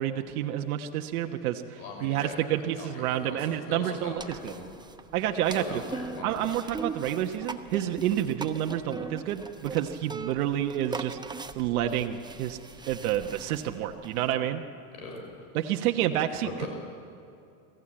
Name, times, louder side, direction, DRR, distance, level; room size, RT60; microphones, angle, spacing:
voice 1, 0.0-4.5 5.1-5.8 6.2-11.2 11.5-12.6 12.9-14.6 15.5-16.7, right 11 dB, 80° right, 5 dB, 1.3 m, -29 dB
voice 2, 1.8-4.7 5.4-6.3 15.0-15.5 16.4-16.7, left 4 dB, 85° left, 2 dB, 5.8 m, -41 dB
sound 1, 4.2-14.3, right 3 dB, 10° right, 0.9 m, -41 dB
23.0 x 15.0 x 8.8 m, 2.5 s
supercardioid pair, 110°, 43 cm